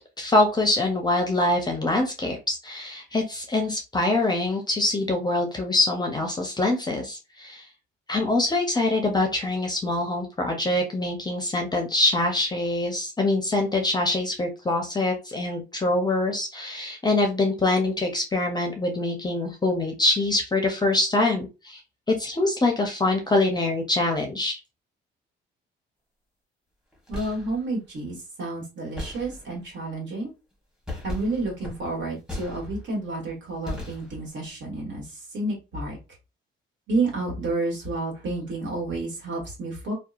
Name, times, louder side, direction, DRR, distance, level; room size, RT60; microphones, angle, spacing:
voice 1, 0.2-7.7 8.1-21.8 22.1-24.6, left 2 dB, 20° left, 3 dB, 0.5 m, -24 dB
sound 1, 26.9-27.6 29.0-29.7 30.8-33.0 33.7-34.4, left 1 dB, 5° right, 1.0 m, -37 dB
voice 2, 27.1-30.3 31.0-36.0 36.9-39.9, right 2 dB, 65° right, -2 dB, 1.4 m, -30 dB
2.7 x 2.2 x 2.3 m, 0.29 s
cardioid pair, 90°, 20 cm